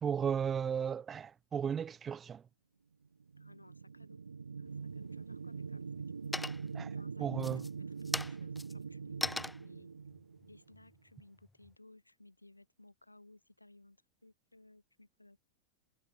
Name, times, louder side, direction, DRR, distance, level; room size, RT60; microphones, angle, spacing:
voice 1, 0.0-2.4 6.7-6.9 7.2-7.6, right 7 dB, 20° right, 0.8 m, -35 dB
sound 1, 3.2-10.9, right 5 dB, 75° right, 2.7 m, -43 dB
voice 2, 3.4-4.2 4.5-5.9 6.9-9.9 10.4-15.4, left 2 dB, 85° left, 3.9 m, -60 dB
sound 2, 4.7-5.2 5.7-6.1 6.3-6.9 7.3-11.8, left 2 dB, 5° left, 0.5 m, -41 dB
figure-of-eight pair, 90°, 0 cm